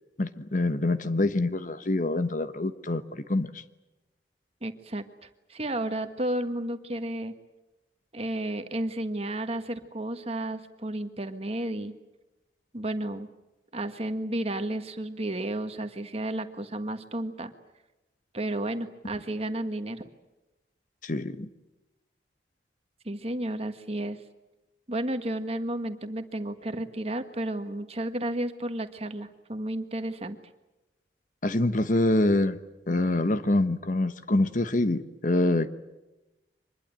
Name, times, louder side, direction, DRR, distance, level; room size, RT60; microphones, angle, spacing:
voice 1, 0.2-3.6 21.0-21.5 31.4-32.6 32.9-35.7, left 2 dB, 45° left, 11 dB, 1.1 m, -25 dB
voice 2, 4.6-7.3 8.1-12.0 12.7-13.3 13.7-17.5 18.3-20.0 23.0-24.2 24.9-30.4, right 1 dB, 35° right, 8 dB, 1.6 m, -32 dB
25.0 x 21.0 x 9.1 m, 1.0 s
head